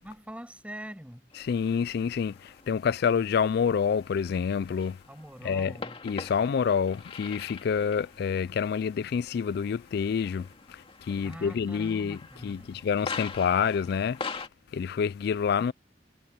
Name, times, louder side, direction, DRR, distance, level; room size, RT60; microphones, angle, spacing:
voice 1, 0.0-1.3 5.1-6.0 11.2-12.8, equal, 5° right, 6.7 m, -44 dB
sound 1, 1.3-14.5, left 4 dB, 30° left, 2.1 m, -44 dB
voice 2, 1.4-5.0 5.4-5.7 6.0-10.8 11.1-14.2 14.7-15.7, left 6 dB, 60° left, 0.3 m, -27 dB
head